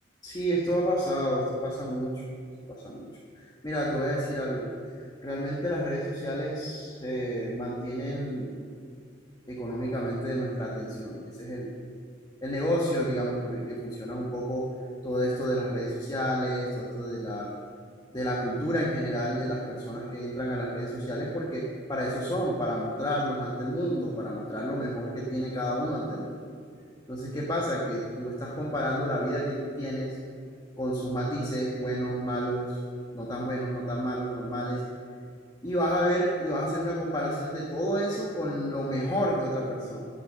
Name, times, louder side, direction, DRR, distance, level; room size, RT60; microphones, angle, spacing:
voice 1, 0.2-2.2 2.7-3.1 3.3-8.6 9.5-11.7 12.4-14.6 15.0-17.5 18.1-21.6 21.9-26.4 27.1-30.2 30.8-32.8 33.1-34.8 35.6-40.1, equal, 20° left, -4 dB, 1.4 m, -30 dB
12.5 x 7.0 x 6.7 m, 2.3 s
head